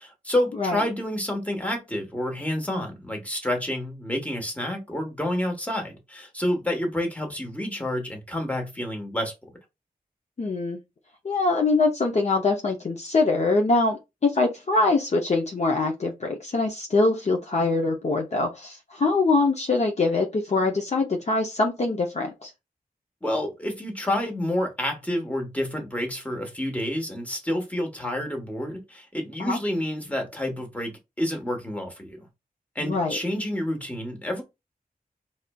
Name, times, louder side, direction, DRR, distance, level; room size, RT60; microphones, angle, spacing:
voice 1, 0.0-9.3 23.2-32.2 32.7-34.4, left 1 dB, 10° left, 1.1 m, -29 dB
voice 2, 10.4-10.8 11.2-22.5 29.4-29.6 32.8-33.2, left 3 dB, 45° left, 0.6 m, -23 dB
4.1 x 3.1 x 2.2 m
wide cardioid pair, 115°, 15 cm